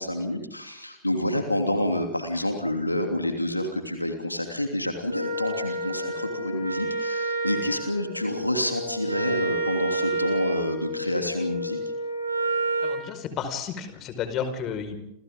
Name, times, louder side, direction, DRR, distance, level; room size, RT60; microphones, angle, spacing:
voice 1, 0.0-11.8, left 1 dB, 85° left, 4 dB, 2.9 m, -28 dB
Wind instrument woodwind instrument, 5.1-13.1, right 2 dB, 85° right, 7.5 m, -29 dB
voice 2, 12.8-15.0, left 7 dB, 35° left, 8 dB, 5.0 m, -32 dB
29.5 x 29.0 x 3.8 m, 0.85 s
figure-of-eight pair, 90°, 0 cm